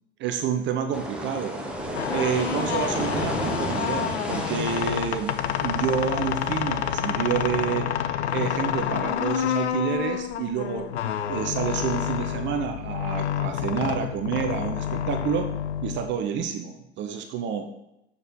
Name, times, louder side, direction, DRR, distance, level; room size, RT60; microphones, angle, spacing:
voice 1, 0.2-1.5 2.1-7.9 8.3-15.5 15.8-17.7, right 8 dB, 30° right, 6 dB, 0.7 m, -29 dB
sound 1, 0.9-7.6, right 1 dB, 5° right, 1.0 m, -33 dB
sound 2, 1.8-16.4, left 10 dB, 75° left, 0.6 m, -28 dB
7.0 x 5.0 x 4.5 m, 0.86 s
figure-of-eight pair, 90°, 35 cm